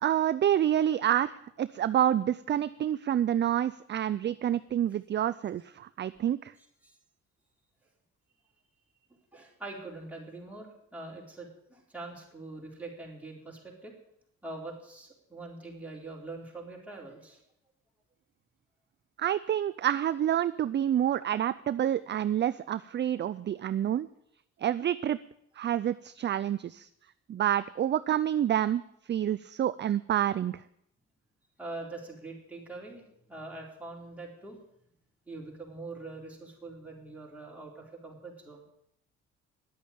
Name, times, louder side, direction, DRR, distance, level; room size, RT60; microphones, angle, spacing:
voice 1, 0.0-6.5 19.2-24.1 24.6-25.2 25.6-26.9 27.3-30.6, right 11 dB, 35° right, 15 dB, 0.4 m, -28 dB
voice 2, 9.3-13.9 14.4-17.4 31.6-34.6 35.3-38.6, right 2 dB, 5° right, -3 dB, 4.2 m, -43 dB
10.5 x 8.3 x 8.9 m, 0.75 s
cardioid pair, 90°, 30 cm